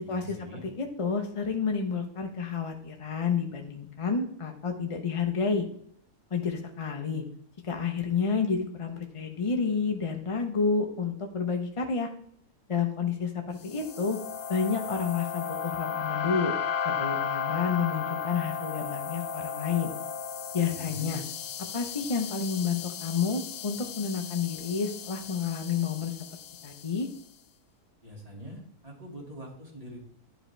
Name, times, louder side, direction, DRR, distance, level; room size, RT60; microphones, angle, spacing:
voice 1, 0.0-0.6 20.7-21.2 28.0-30.0, right 1 dB, 25° right, -2 dB, 2.3 m, -44 dB
voice 2, 0.6-5.6 6.3-7.2 7.6-12.1 12.7-14.2 14.5-16.6 16.8-19.9 20.5-21.2 21.6-26.1 26.6-27.1, left 5 dB, 35° left, 3 dB, 0.6 m, -30 dB
sound 1, 13.6-27.0, left 7 dB, 85° left, 1.2 m, -35 dB
11.5 x 5.0 x 3.3 m, 0.66 s
omnidirectional pair, 1.7 m